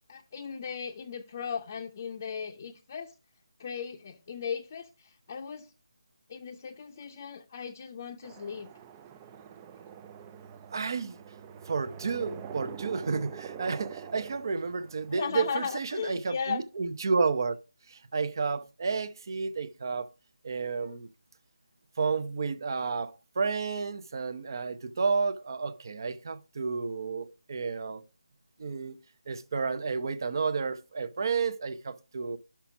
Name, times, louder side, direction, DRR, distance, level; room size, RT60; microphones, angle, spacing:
voice 1, 0.1-3.1 3.6-5.7 6.3-8.7 15.1-16.6 20.8-21.0, left 6 dB, 30° left, 0.7 m, -37 dB
sound 1, 8.2-15.5, right 7 dB, 15° right, 0.4 m, -45 dB
voice 2, 10.7-11.2 11.7-17.6 18.1-20.1 20.4-21.1 22.0-28.0 28.6-29.0 29.3-32.4, right 4 dB, 45° right, 0.7 m, -31 dB
5.8 x 5.8 x 5.9 m
figure-of-eight pair, 165°, 3 cm